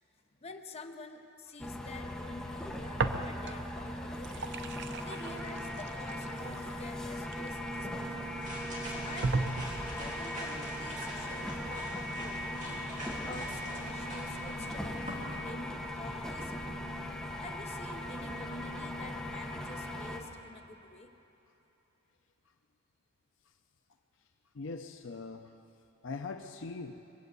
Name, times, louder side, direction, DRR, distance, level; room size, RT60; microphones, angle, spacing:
voice 1, 0.4-4.5 5.0-8.3 8.9-9.6 9.9-12.8 13.1-16.8 17.4-21.1, left 3 dB, 30° left, 6 dB, 0.8 m, -48 dB
sound 1, 1.6-20.2, left 1 dB, 5° left, 1.1 m, -39 dB
sound 2, 3.0-3.7 4.1-8.0 8.6-8.7 9.2-10.1, right 3 dB, 60° right, 0.7 m, -36 dB
sound 3, 7.8-15.4, equal, 40° right, 3.3 m, -45 dB
voice 2, 24.5-25.6 26.0-27.0, left 3 dB, 65° left, 6 dB, 0.5 m, -41 dB
22.0 x 7.9 x 8.1 m, 2.9 s
head